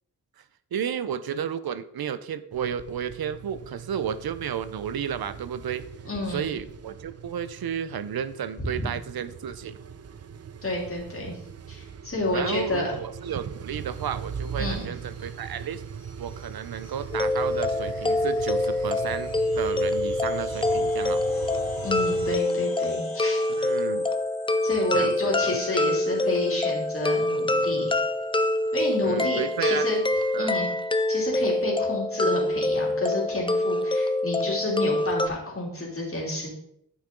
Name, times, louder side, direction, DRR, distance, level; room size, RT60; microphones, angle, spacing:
voice 1, 0.7-5.9 6.3-9.8 12.3-15.8 16.2-21.2 23.6-24.1 24.9-25.3 29.0-30.0 30.3-30.5, right 8 dB, 85° right, 14 dB, 0.6 m, -32 dB
sound 1, 2.5-22.4, right 7 dB, 45° right, 0.4 m, -40 dB
voice 2, 6.0-6.4 8.6-8.9 10.6-11.3 11.7-12.9 14.6-14.9 21.8-23.5 24.6-28.0 28.7-30.0 30.4-30.7 31.1-36.5, left 1 dB, 40° left, -3 dB, 3.1 m, -30 dB
sound 2, 13.9-30.1, left 4 dB, 80° left, 2.4 m, -49 dB
sound 3, 17.1-35.3, left 2 dB, 15° left, 0.4 m, -25 dB
12.0 x 5.8 x 3.8 m, 0.72 s
wide cardioid pair, 125°, 36 cm